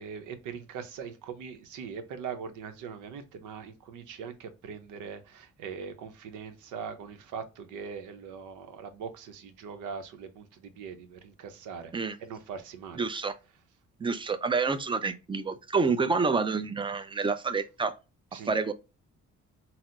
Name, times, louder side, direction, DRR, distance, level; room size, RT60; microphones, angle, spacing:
voice 1, 0.0-11.9 12.2-13.1 18.3-18.5, right 6 dB, 90° right, 0.7 m, -41 dB
voice 2, 13.0-13.3 14.0-17.9 18.3-18.7, right 4 dB, 15° right, 0.5 m, -28 dB
4.1 x 2.0 x 2.5 m
cardioid pair, 90°, 30 cm